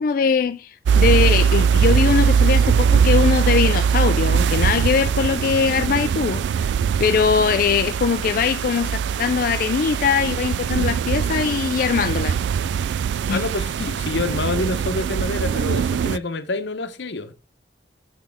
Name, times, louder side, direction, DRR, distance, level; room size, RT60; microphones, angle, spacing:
voice 1, 0.0-6.7 7.0-12.4 13.3-13.4 13.8-13.9, left 6 dB, 50° left, 0.3 m, -21 dB
sound 1, 0.9-16.2, right 7 dB, 85° right, 0.3 m, -21 dB
voice 2, 13.3-17.3, left 3 dB, 90° left, 0.9 m, -27 dB
7.2 x 6.2 x 3.5 m
head